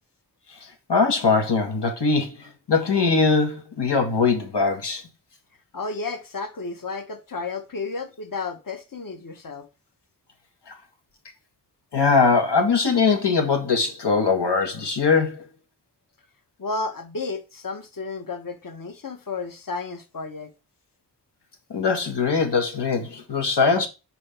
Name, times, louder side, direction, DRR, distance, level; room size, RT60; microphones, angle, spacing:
voice 1, 0.9-5.0 10.7-10.8 11.9-15.4 21.7-23.9, left 4 dB, 90° left, 1.8 m, -21 dB
voice 2, 5.7-9.7 16.6-20.5, left 3 dB, 55° left, 1.3 m, -32 dB
6.2 x 4.5 x 4.4 m
wide cardioid pair, 60°, 40 cm